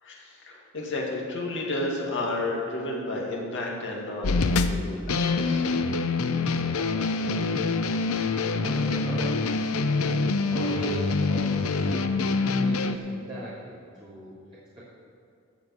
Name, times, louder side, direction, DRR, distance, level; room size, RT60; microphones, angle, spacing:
voice 1, 0.0-4.3 4.6-5.8, left 2 dB, 60° left, -2 dB, 2.2 m, -32 dB
sound 1, 4.2-13.0, left 3 dB, 80° left, 0.6 m, -25 dB
voice 2, 6.6-10.2 10.5-12.1 12.4-14.4 14.7-15.0, right 1 dB, 25° right, -13 dB, 3.2 m, -40 dB
14.5 x 5.2 x 7.8 m, 2.5 s
head